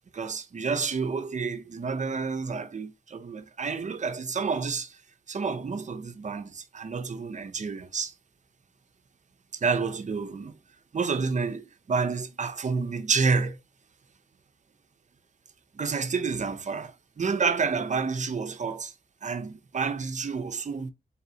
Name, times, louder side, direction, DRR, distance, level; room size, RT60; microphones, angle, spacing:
voice 1, 0.1-5.0 5.3-8.1 9.6-10.5 10.9-13.6 15.7-18.9 19.2-20.9, right 5 dB, 45° right, 0.6 m, -29 dB
4.1 x 4.0 x 2.7 m
wide cardioid pair, 145°, 17 cm